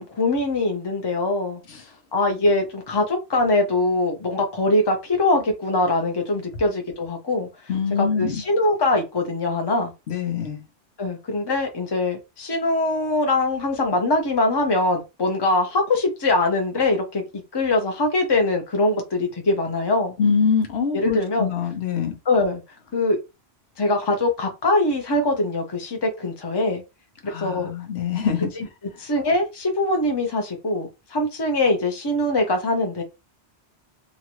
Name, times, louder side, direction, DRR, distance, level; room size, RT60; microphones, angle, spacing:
voice 1, 0.0-1.6 2.1-7.5 8.0-9.9 11.0-17.2 17.5-20.1 20.9-21.5 22.3-22.6 22.9-23.2 23.8-26.8 27.2-27.7 28.6-28.7 29.0-33.0, left 2 dB, 25° left, 0.7 m, -22 dB
voice 2, 7.7-8.4 10.1-10.6 20.2-22.1 27.3-28.5, left 6 dB, 75° left, 1.0 m, -24 dB
3.0 x 2.5 x 3.0 m
omnidirectional pair, 1.1 m